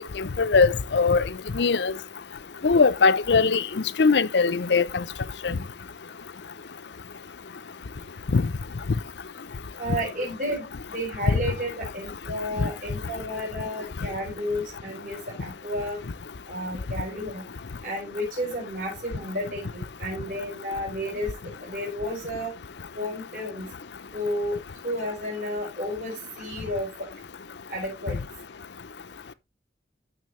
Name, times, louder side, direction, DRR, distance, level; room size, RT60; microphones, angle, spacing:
voice 1, 0.2-1.2 1.5-1.9 2.6-3.6 4.0-5.0 5.4-5.6 8.3-8.4 12.6-12.7, left 4 dB, 80° left, 0.6 m, -20 dB
voice 2, 9.8-16.0 16.5-17.4 17.8-21.3 21.6-22.5 22.9-23.7 24.1-24.6 24.8-26.9 27.7-28.2, equal, 50° right, 5.8 m, -32 dB
14.0 x 6.4 x 3.2 m
head